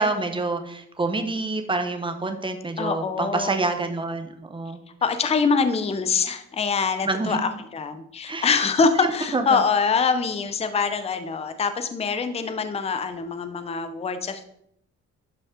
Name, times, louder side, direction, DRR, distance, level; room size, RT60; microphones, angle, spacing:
voice 1, 0.0-4.8 7.0-7.4 8.3-8.5 9.3-9.6, right 3 dB, 15° right, 6 dB, 0.8 m, -27 dB
voice 2, 2.8-3.6 5.0-14.4, left 5 dB, 20° left, 10 dB, 0.5 m, -24 dB
11.5 x 5.2 x 3.7 m, 0.74 s
wide cardioid pair, 165°, 30 cm